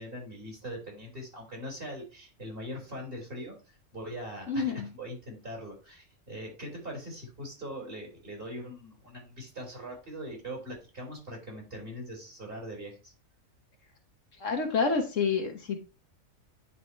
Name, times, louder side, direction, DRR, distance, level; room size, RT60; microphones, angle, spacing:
voice 1, 0.0-13.1, equal, 40° right, -1 dB, 3.9 m, -41 dB
voice 2, 4.5-4.9 14.4-15.8, left 5 dB, 65° left, 4 dB, 1.5 m, -28 dB
9.8 x 4.2 x 3.2 m, 0.31 s
omnidirectional pair, 1.4 m